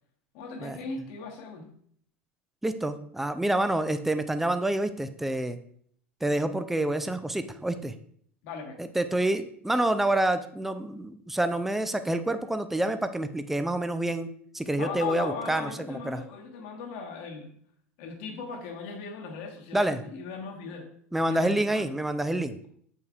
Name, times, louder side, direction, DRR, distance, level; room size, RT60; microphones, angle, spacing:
voice 1, 0.3-1.7 8.4-8.8 14.7-17.5 18.0-20.9 21.2-21.9, left 5 dB, 60° left, 2 dB, 1.4 m, -38 dB
voice 2, 2.6-5.6 6.2-7.9 8.8-14.3 14.5-16.2 19.7-20.0 21.1-22.6, right 1 dB, 5° right, 10 dB, 0.4 m, -27 dB
7.7 x 5.4 x 2.4 m, 0.63 s
hypercardioid pair, 85°, 7 cm